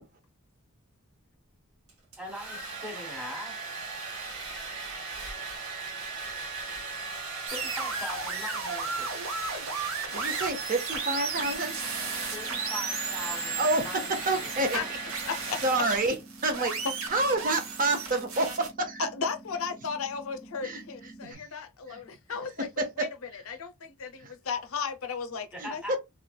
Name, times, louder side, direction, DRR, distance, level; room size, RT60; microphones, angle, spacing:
Domestic sounds home sounds, 1.9-16.2, right 3 dB, 85° right, 1.8 m, -38 dB
voice 1, 2.2-3.5 7.5-9.1 12.3-14.9 25.5-26.0, left 1 dB, 5° right, 1.2 m, -42 dB
sound 1, 7.5-18.7, right 5 dB, 65° right, 0.9 m, -35 dB
voice 2, 10.1-11.8 13.6-14.8 15.6-16.1 16.4-19.0 20.6-21.4 21.9-22.0 22.8-23.1 24.2-24.3 25.6-26.0, right 2 dB, 40° right, 0.6 m, -29 dB
sound 2, 11.3-21.3, right 1 dB, 15° left, 0.5 m, -50 dB
voice 3, 15.3-15.6 19.0-23.1 23.3-26.0, left 5 dB, 65° left, 0.5 m, -35 dB
3.1 x 3.0 x 2.2 m
head